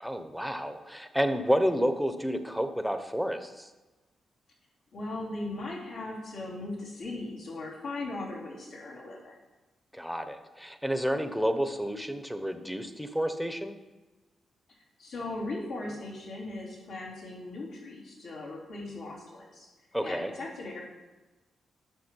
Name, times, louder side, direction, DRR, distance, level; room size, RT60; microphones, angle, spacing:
voice 1, 0.0-3.7 9.9-13.8 19.9-20.3, equal, ahead, 8 dB, 0.9 m, -30 dB
voice 2, 4.9-9.4 15.0-19.7 20.0-20.8, left 2 dB, 80° left, -8 dB, 3.5 m, -38 dB
9.5 x 6.6 x 4.6 m, 1.1 s
supercardioid pair, 50°, 0 cm